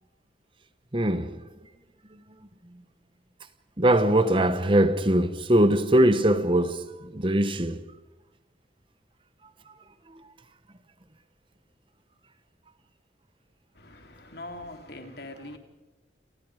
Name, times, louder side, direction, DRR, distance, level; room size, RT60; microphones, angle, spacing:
voice 1, 0.9-1.7 2.1-2.2 3.8-7.8 9.7-9.8 10.1-10.2, right 1 dB, 30° right, 1.1 m, -22 dB
voice 2, 13.7-15.6, left 1 dB, 60° left, 3.3 m, -42 dB
29.5 x 29.0 x 4.9 m
head